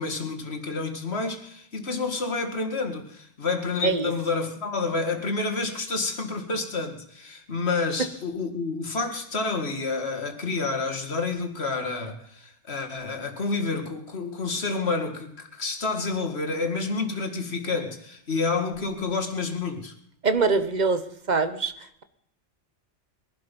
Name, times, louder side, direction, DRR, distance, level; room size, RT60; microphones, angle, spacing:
voice 1, 0.0-19.9, left 3 dB, 55° left, 2.2 m, -29 dB
voice 2, 20.2-21.0 21.3-21.7, right 4 dB, 35° right, 1.2 m, -23 dB
21.5 x 11.5 x 5.4 m
omnidirectional pair, 1.3 m